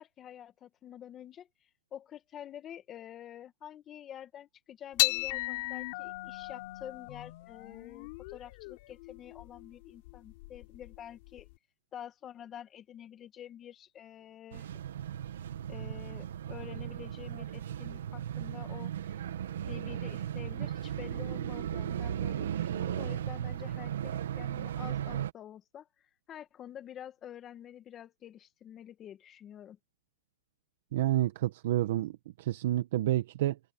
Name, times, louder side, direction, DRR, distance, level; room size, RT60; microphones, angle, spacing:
voice 1, 0.0-11.5 11.9-14.7 15.7-19.2 19.7-29.8, left 10 dB, 20° left, 2.1 m, -48 dB
sound 1, 5.0-11.5, left 24 dB, 45° left, 3.7 m, -36 dB
sound 2, 14.5-25.3, right 10 dB, 75° right, 2.1 m, -36 dB
voice 2, 30.9-33.6, right 14 dB, 55° right, 1.7 m, -29 dB
hypercardioid pair, 150°, 0 cm